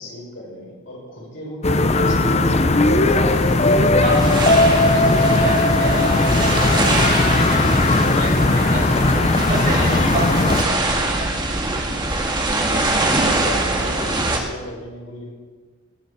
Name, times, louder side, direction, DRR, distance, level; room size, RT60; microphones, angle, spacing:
voice 1, 0.0-3.0 13.3-15.3, left 1 dB, 65° left, -3 dB, 6.5 m, -35 dB
sound 1, 1.6-10.6, left 2 dB, 35° left, 0.8 m, -17 dB
sound 2, 3.0-14.4, right 2 dB, 20° right, 2.0 m, -23 dB
voice 2, 3.9-11.7, right 1 dB, 50° right, -3 dB, 6.2 m, -30 dB
20.5 x 7.4 x 8.4 m, 1.4 s
head